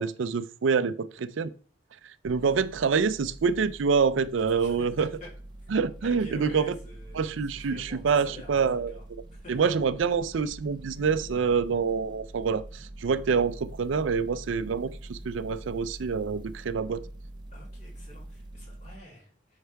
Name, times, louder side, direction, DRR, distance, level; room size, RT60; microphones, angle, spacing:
voice 1, 0.0-1.5 2.2-5.1 5.7-6.7 7.2-8.9 9.5-12.6 13.0-17.0, right 5 dB, 75° right, 0.4 m, -26 dB
sound 1, 2.2-19.0, right 1 dB, 25° right, 0.6 m, -45 dB
voice 2, 4.5-5.3 5.6-5.7 6.0-9.0 9.3-9.6 17.5-19.6, left 1 dB, 40° left, 3.4 m, -48 dB
8.0 x 5.5 x 3.4 m
head